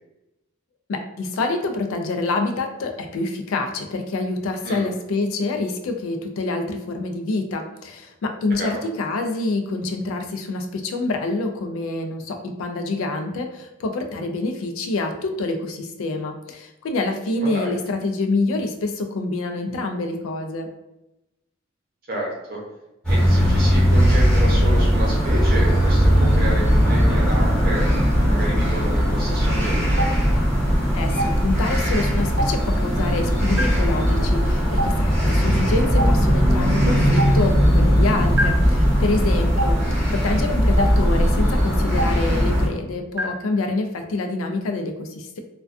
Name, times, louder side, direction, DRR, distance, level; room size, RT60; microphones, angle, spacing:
voice 1, 0.9-20.7 30.9-39.8 40.1-45.4, left 2 dB, 90° left, 5 dB, 0.4 m, -26 dB
voice 2, 8.5-8.8 17.4-17.7 22.1-22.6 23.1-27.9 28.2-30.1 35.4-35.7, right 1 dB, 45° right, -2 dB, 0.6 m, -30 dB
sound 1, 23.0-42.7, equal, 5° left, 0.7 m, -19 dB
Stream, 30.0-30.1 31.2-31.3 32.4-32.5 33.6-33.7 34.8-34.9 36.0-36.1 37.2-37.3 38.4-38.5 39.6-39.7 40.8-40.9 42.0-42.1 43.2-43.3, right 1 dB, 85° right, 0.6 m, -21 dB
2.3 x 2.2 x 2.4 m, 0.93 s
head